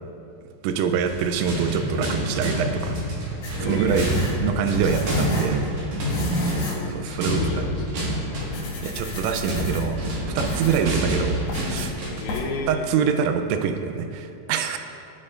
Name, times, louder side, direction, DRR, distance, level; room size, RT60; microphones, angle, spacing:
voice 1, 0.6-3.0 3.6-5.6 6.8-7.4 8.8-10.0 10.4-11.9 12.7-14.8, right 7 dB, 85° right, 7 dB, 3.2 m, -25 dB
sound 1, 0.9-12.3, equal, 60° right, 2.2 m, -28 dB
sound 2, 3.4-5.6 6.0-6.9 7.2-7.3 7.9-8.1 8.4-10.0 10.4-10.9 11.5-11.9 12.3-12.4, left 3 dB, 60° left, 2.5 m, -33 dB
voice 2, 3.6-4.4 7.0-8.3 12.2-12.9, left 3 dB, 75° left, -1 dB, 2.3 m, -33 dB
17.0 x 7.4 x 2.5 m, 2.6 s
omnidirectional pair, 5.8 m